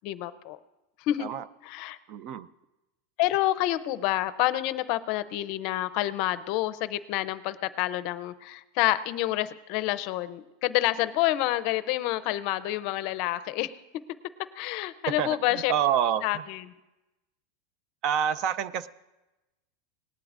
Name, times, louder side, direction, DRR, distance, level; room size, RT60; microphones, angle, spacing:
voice 1, 0.0-0.6 1.0-1.3 1.6-2.0 3.2-13.7 14.6-15.7 16.2-16.6, left 15 dB, 50° left, 0.5 m, -28 dB
voice 2, 2.1-2.5 15.2-16.4 18.0-18.9, right 9 dB, 40° right, 0.4 m, -27 dB
18.5 x 11.5 x 2.5 m
supercardioid pair, 155°, 0 cm